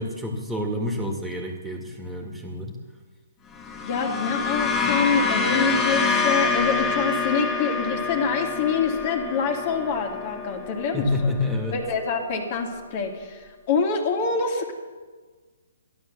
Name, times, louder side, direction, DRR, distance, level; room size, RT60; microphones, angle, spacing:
voice 1, 0.0-2.8 10.9-11.7, left 2 dB, 5° right, 2 dB, 2.2 m, -28 dB
sound 1, 3.5-12.0, left 4 dB, 15° left, 1.6 m, -27 dB
voice 2, 3.8-11.3 11.7-14.7, left 5 dB, 40° left, 3 dB, 2.3 m, -26 dB
13.0 x 11.0 x 6.9 m, 1.4 s
hypercardioid pair, 140°, 0 cm